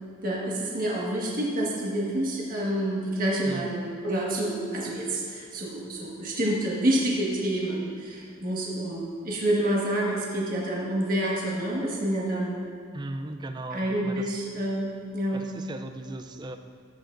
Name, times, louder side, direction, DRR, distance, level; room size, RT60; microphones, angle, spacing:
voice 1, 0.2-12.6 13.7-15.5, right 1 dB, 40° right, -4 dB, 1.6 m, -28 dB
voice 2, 3.5-3.8 12.9-14.4 15.3-16.6, right 2 dB, 20° right, 7 dB, 0.4 m, -37 dB
14.5 x 8.1 x 2.6 m, 2.4 s
head